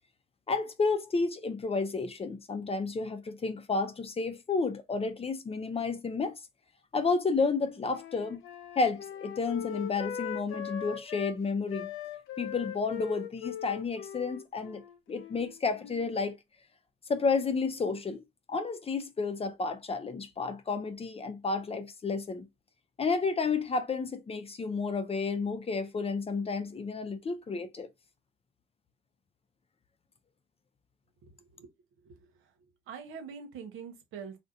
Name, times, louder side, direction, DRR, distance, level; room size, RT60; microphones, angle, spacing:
voice 1, 0.5-6.3 6.9-8.4 8.8-11.9 12.4-14.8 15.1-16.4 17.1-18.2 18.5-22.4 23.0-27.9, left 4 dB, 30° left, 0.5 m, -31 dB
Wind instrument woodwind instrument, 7.4-11.4 11.7-16.2, left 10 dB, 90° left, 0.6 m, -41 dB
voice 2, 31.2-31.7 32.0-32.3 32.9-34.4, right 6 dB, 90° right, 0.9 m, -44 dB
2.7 x 2.1 x 3.6 m
cardioid pair, 90°, 20 cm